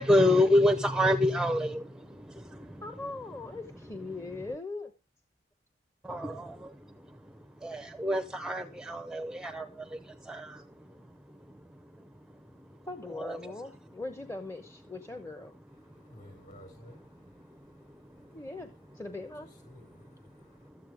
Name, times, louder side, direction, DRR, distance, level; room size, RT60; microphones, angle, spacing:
voice 1, 0.0-1.8 6.1-6.6 7.6-9.7 10.3-10.5 13.1-13.5, left 1 dB, 5° right, 0.6 m, -26 dB
voice 2, 2.8-4.9 12.9-15.5 18.3-19.5, left 2 dB, 15° left, 0.9 m, -40 dB
voice 3, 15.9-17.0 19.6-20.7, left 1 dB, 45° left, 7.2 m, -53 dB
13.0 x 8.8 x 5.0 m
head